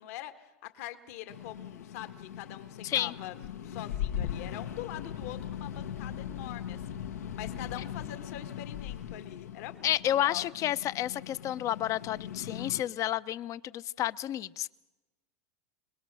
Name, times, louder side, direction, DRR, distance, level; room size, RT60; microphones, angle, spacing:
voice 1, 0.0-3.3 3.6-7.1 7.4-10.5, left 13 dB, 65° left, 1.9 m, -44 dB
sound 1, 1.3-12.8, left 9 dB, 90° left, 1.5 m, -39 dB
voice 2, 2.8-3.1 9.8-14.7, left 12 dB, 40° left, 0.7 m, -30 dB
28.5 x 20.0 x 6.3 m
hypercardioid pair, 105°, 8 cm